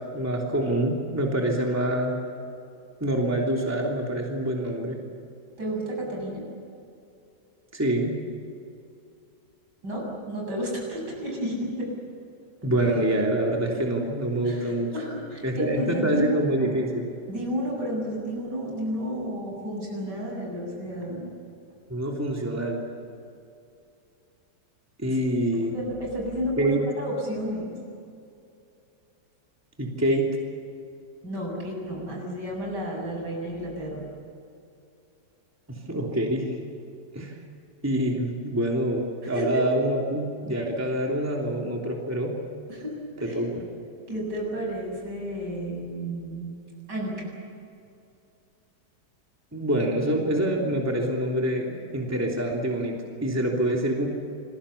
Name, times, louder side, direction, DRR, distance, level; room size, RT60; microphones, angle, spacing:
voice 1, 0.1-2.1 3.0-5.0 7.7-8.1 12.6-14.9 15.4-17.1 21.9-22.8 25.0-25.8 26.6-26.8 29.8-30.3 35.7-36.6 37.1-37.4 37.8-42.3 43.2-43.6 49.5-54.1, right 1 dB, 10° right, -1 dB, 3.2 m, -26 dB
voice 2, 5.6-6.5 9.8-11.9 14.4-16.7 17.3-21.3 25.1-25.2 25.5-27.8 31.2-34.1 39.2-39.6 42.7-43.4 44.1-46.5 46.9-47.4, equal, 70° right, -1 dB, 8.3 m, -32 dB
28.5 x 22.0 x 7.2 m, 2.6 s
omnidirectional pair, 1.9 m